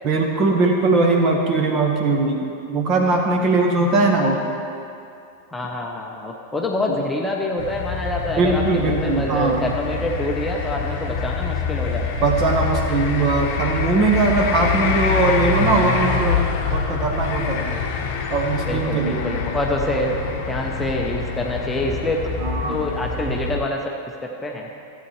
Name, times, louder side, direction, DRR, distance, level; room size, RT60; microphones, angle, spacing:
voice 1, 0.0-4.4 8.4-9.7 12.2-16.4 16.7-17.6 18.3-19.3 19.9-20.3 22.4-22.8, right 3 dB, 35° right, 1 dB, 1.4 m, -20 dB
voice 2, 5.5-12.1 18.7-20.2 20.5-22.2 22.7-23.8 24.2-24.7, left 1 dB, 10° left, -1 dB, 0.9 m, -26 dB
sound 1, 7.6-23.6, left 5 dB, 45° left, 1.0 m, -25 dB
15.0 x 8.6 x 3.3 m, 2.5 s
figure-of-eight pair, 90°, 0 cm